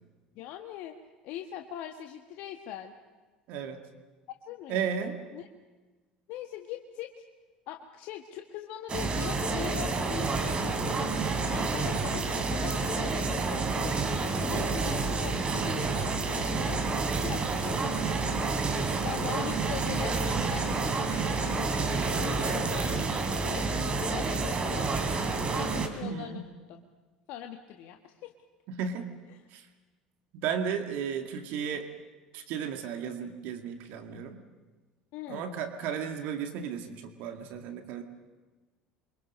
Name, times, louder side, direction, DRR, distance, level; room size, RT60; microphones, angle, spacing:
voice 1, 0.3-1.0 1.2-3.0 4.4-4.8 5.3-5.4 6.3-7.2 7.7-16.8 17.2-18.1 19.0-24.9 25.5-26.4 26.7-26.8 27.3-28.3 35.1-35.6, left 11 dB, 60° left, 5 dB, 1.4 m, -42 dB
voice 2, 3.5-3.8 4.7-5.2 26.0-26.5 28.7-29.1 29.5-29.7 30.3-31.9 32.3-34.4 35.3-38.0, right 7 dB, 60° right, 5 dB, 2.1 m, -34 dB
sound 1, 8.9-25.9, right 3 dB, 30° right, 3.7 m, -29 dB
29.0 x 24.5 x 5.4 m, 1.3 s
hypercardioid pair, 65°, 3 cm